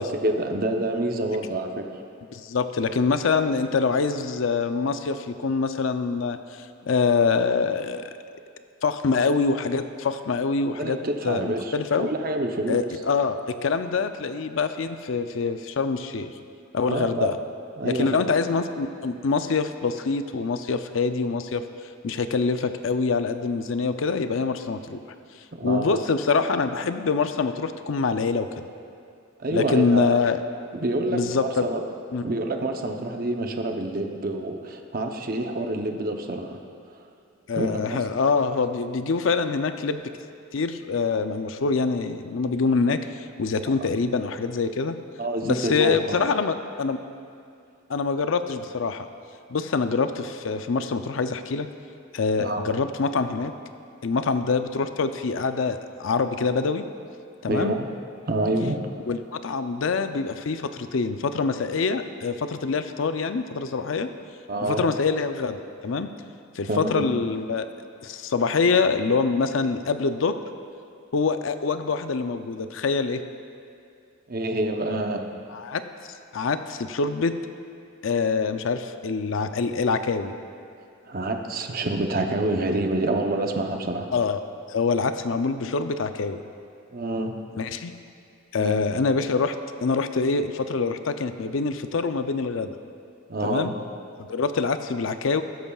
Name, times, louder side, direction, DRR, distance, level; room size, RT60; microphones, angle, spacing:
voice 1, 0.0-1.9 10.8-11.7 12.0-12.8 16.8-17.3 17.8-18.3 25.6-26.1 29.4-30.2 30.7-31.8 32.2-36.6 37.6-38.0 43.7-43.8 45.2-46.3 52.4-52.6 57.5-57.9 58.3-58.9 64.5-64.8 66.7-67.1 74.3-75.2 81.0-84.1 86.9-87.3 88.6-88.8 93.3-93.7, right 2 dB, 45° right, 4 dB, 0.7 m, -27 dB
voice 2, 2.3-6.4 6.8-8.0 8.8-11.0 11.2-12.1 12.7-16.3 16.7-17.4 17.8-21.6 22.0-25.0 25.6-28.7 29.5-30.4 31.1-31.7 32.1-32.2 37.5-40.1 40.5-45.0 45.4-47.0 47.9-49.1 49.5-51.7 52.1-53.5 54.0-56.9 57.4-57.7 59.1-64.1 64.6-66.1 66.6-67.7 68.0-70.4 71.1-73.2 75.5-75.8 76.3-77.4 78.0-80.3 84.1-84.4 84.7-86.4 87.5-87.9 88.5-89.6 89.8-92.7 93.4-93.7 94.2-95.4, left 4 dB, 70° left, 9 dB, 0.5 m, -25 dB
13.5 x 12.5 x 2.4 m, 2.4 s
head